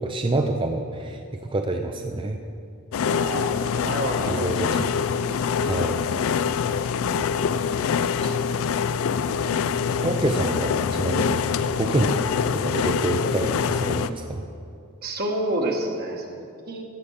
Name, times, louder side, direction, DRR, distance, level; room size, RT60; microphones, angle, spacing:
voice 1, 0.0-2.4 4.3-4.9 5.6-6.0 10.0-11.5 11.8-12.2 12.5-14.4, right 2 dB, 25° right, 4 dB, 0.5 m, -27 dB
sound 1, 2.9-14.1, left 6 dB, 65° left, 0.4 m, -25 dB
voice 2, 3.1-4.7 5.6-5.7 8.2-8.3 15.0-16.8, right 1 dB, 45° right, 2 dB, 1.2 m, -29 dB
15.0 x 5.2 x 7.1 m, 2.4 s
head